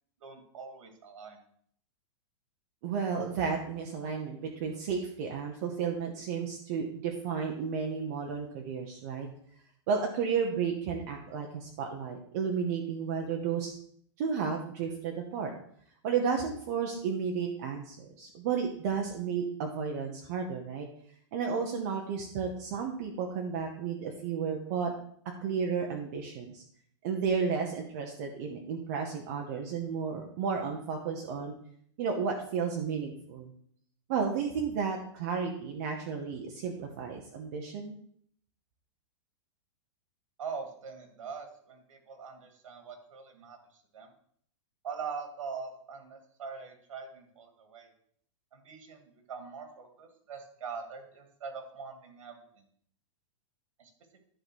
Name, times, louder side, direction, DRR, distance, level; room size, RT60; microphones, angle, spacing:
voice 1, 0.2-1.4 40.4-43.6 43.9-44.1 44.8-47.9 48.5-49.0 49.3-52.4 53.8-53.9, right 5 dB, 85° right, 5 dB, 2.3 m, -42 dB
voice 2, 2.8-9.3 9.9-13.7 14.2-15.5 16.0-20.9 21.3-24.9 25.4-26.6 27.0-31.5 32.0-33.5 34.1-38.0, right 6 dB, 30° right, 2 dB, 0.8 m, -32 dB
10.5 x 3.8 x 6.2 m, 0.63 s
supercardioid pair, 175°, 16 cm